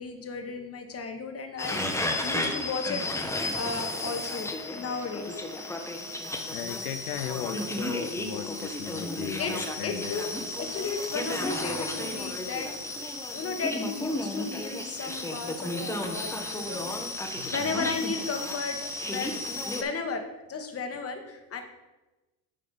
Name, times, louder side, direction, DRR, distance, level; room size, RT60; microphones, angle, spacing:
voice 1, 0.0-5.5 9.4-9.5 9.8-10.3 10.6-12.7 13.3-16.9 17.3-18.8 19.0-19.4 19.7-21.6, left 4 dB, 30° left, 5 dB, 1.3 m, -34 dB
sound 1, 1.6-19.8, left 1 dB, 5° left, 1.0 m, -33 dB
voice 2, 6.3-10.2 17.2-18.0, left 9 dB, 90° left, 8 dB, 0.7 m, -37 dB
9.6 x 3.3 x 5.3 m, 1.1 s
supercardioid pair, 80°, 44 cm